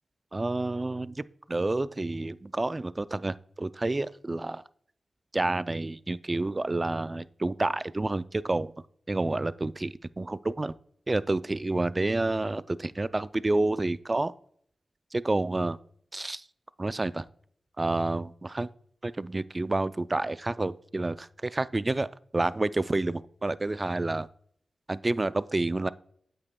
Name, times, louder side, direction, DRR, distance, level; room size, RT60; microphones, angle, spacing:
voice 1, 0.3-4.6 5.3-8.7 9.1-10.7 11.1-14.3 15.1-15.8 16.1-16.4 16.8-17.2 17.8-18.7 19.0-24.3 24.9-25.9, right 2 dB, 30° right, 16 dB, 0.3 m, -29 dB
8.5 x 8.0 x 2.2 m, 0.63 s
cardioid pair, 65°, 0 cm